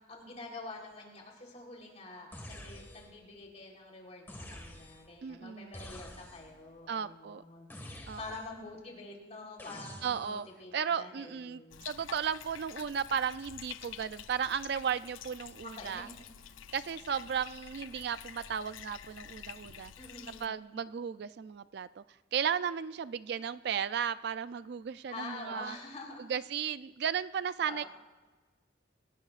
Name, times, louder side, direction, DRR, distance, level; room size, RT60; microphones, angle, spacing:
voice 1, 0.1-7.7 8.2-11.9 15.6-16.2 20.0-20.6 25.1-26.3 27.6-27.9, left 2 dB, 35° left, -1 dB, 3.7 m, -47 dB
sound 1, 2.3-3.2 4.3-5.1 5.7-6.6 7.7-8.6 9.6-10.5, left 1 dB, 10° left, 1.7 m, -48 dB
voice 2, 5.2-5.8 6.9-7.4 8.1-8.2 10.0-10.5 10.7-16.1 16.7-19.9 20.4-22.0 22.3-25.8 26.3-27.8, right 7 dB, 55° right, 14 dB, 0.3 m, -35 dB
Bathtub (filling or washing), 11.7-20.5, left 9 dB, 85° left, 0.5 m, -48 dB
26.5 x 17.5 x 2.5 m, 1.3 s
head